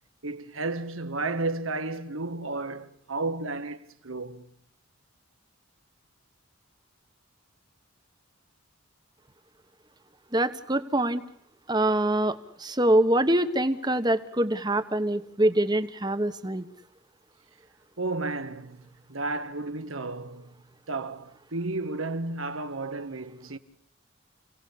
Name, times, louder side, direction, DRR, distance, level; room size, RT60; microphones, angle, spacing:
voice 1, 0.2-3.8 4.0-4.5 18.0-20.6 20.9-23.6, right 3 dB, 80° right, 1.7 m, -32 dB
voice 2, 10.3-11.2 11.7-16.6, right 1 dB, 20° right, 1.3 m, -24 dB
29.5 x 18.0 x 8.7 m
head